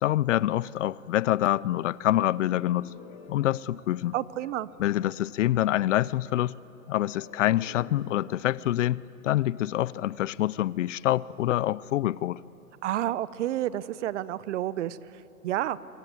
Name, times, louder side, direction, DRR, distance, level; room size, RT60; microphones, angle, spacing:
voice 1, 0.0-2.9 3.3-4.1 4.8-6.5 6.9-12.4, left 14 dB, 60° left, 0.6 m, -26 dB
sound 1, 2.2-4.6 7.0-10.3, left 5 dB, 35° left, 4.2 m, -50 dB
voice 2, 4.1-4.7 12.8-15.0 15.4-15.8, right 13 dB, 55° right, 0.9 m, -29 dB
29.0 x 25.5 x 7.9 m
hypercardioid pair, 130°, 44 cm